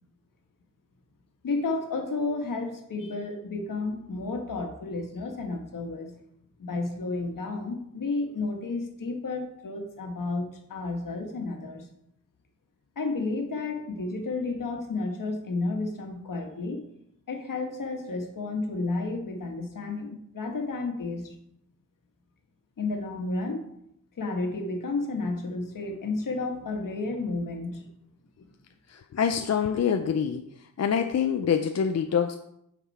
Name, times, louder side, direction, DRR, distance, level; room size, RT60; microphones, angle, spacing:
voice 1, 1.4-6.1 6.6-11.9 13.0-16.8 17.3-21.4 22.8-23.7 24.2-27.9, left 3 dB, 75° left, 3 dB, 1.7 m, -32 dB
voice 2, 28.9-30.4 30.8-32.4, left 7 dB, 55° left, 7 dB, 0.5 m, -25 dB
9.1 x 6.0 x 4.3 m, 0.76 s
wide cardioid pair, 115°, 33 cm